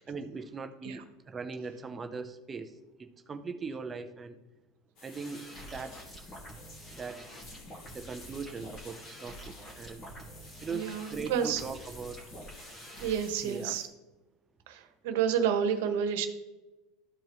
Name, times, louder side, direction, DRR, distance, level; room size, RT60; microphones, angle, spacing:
voice 1, 0.1-2.7 3.0-4.4 5.0-5.4 5.7-6.3 6.9-7.4 7.9-10.0 10.6-12.2 13.4-13.8, right 4 dB, 20° right, 8 dB, 0.6 m, -40 dB
sound 1, 5.0-13.9, left 2 dB, 50° left, 2.6 m, -53 dB
sound 2, 5.1-13.2, equal, 20° left, 2.0 m, -47 dB
voice 2, 10.7-11.6 13.0-13.8 14.7-14.8 15.0-16.3, right 8 dB, 75° right, 7 dB, 1.2 m, -29 dB
13.5 x 4.6 x 3.1 m, 1.1 s
supercardioid pair, 135°, 0 cm